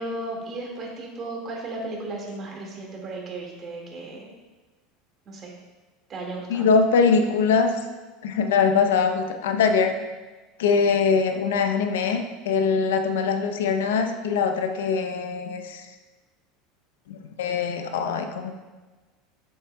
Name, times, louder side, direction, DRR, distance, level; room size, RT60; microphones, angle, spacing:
voice 1, 0.0-4.3 5.3-5.5 6.1-6.7, right 2 dB, 35° right, -1 dB, 1.8 m, -35 dB
voice 2, 6.5-7.7 8.2-9.9 10.6-15.9 17.1-18.5, left 5 dB, 85° left, 6 dB, 0.6 m, -22 dB
7.7 x 6.4 x 2.2 m, 1.3 s
supercardioid pair, 105°, 0 cm